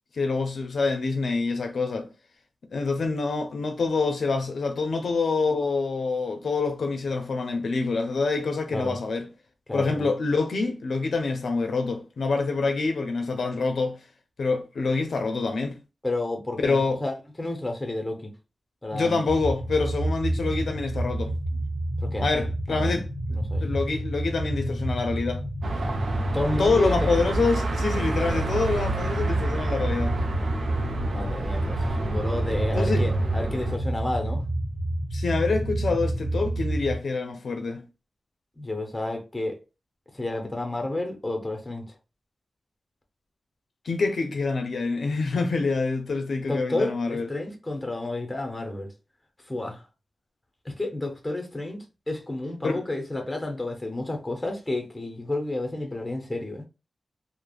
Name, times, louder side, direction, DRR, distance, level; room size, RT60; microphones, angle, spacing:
voice 1, 0.2-2.1 2.7-9.3 9.7-14.0 14.4-15.8 16.6-17.0 18.9-21.6 22.2-25.4 26.6-30.2 32.7-33.1 35.1-37.8 43.9-47.3 52.6-52.8, left 4 dB, 75° left, 0.5 m, -26 dB
voice 2, 9.7-10.1 16.0-18.3 18.8-19.2 22.0-23.0 23.3-23.6 26.3-27.0 31.1-34.4 38.6-39.6 40.1-41.8 46.5-48.9 49.5-49.8 50.6-56.7, left 2 dB, 15° left, 0.7 m, -31 dB
sound 1, 19.3-37.0, right 1 dB, 45° right, 1.1 m, -30 dB
Car passing by / Traffic noise roadway noise / Engine, 25.6-33.8, right 2 dB, 85° right, 0.4 m, -28 dB
3.2 x 2.0 x 2.3 m
wide cardioid pair, 120°, 0 cm